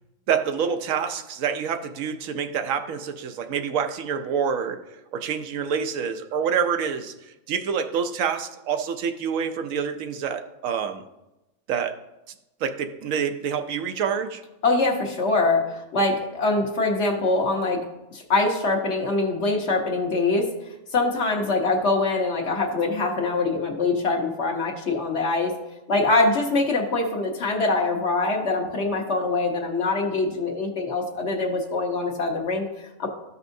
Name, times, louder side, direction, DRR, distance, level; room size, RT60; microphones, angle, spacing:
voice 1, 0.3-4.8 5.1-11.0 11.7-12.0 12.6-14.4, right 7 dB, 80° right, 7 dB, 1.0 m, -27 dB
voice 2, 14.6-17.8 18.1-20.5 20.9-25.5 25.9-33.1, left 3 dB, 60° left, 1 dB, 1.4 m, -23 dB
13.5 x 5.5 x 2.6 m, 0.99 s
omnidirectional pair, 1.4 m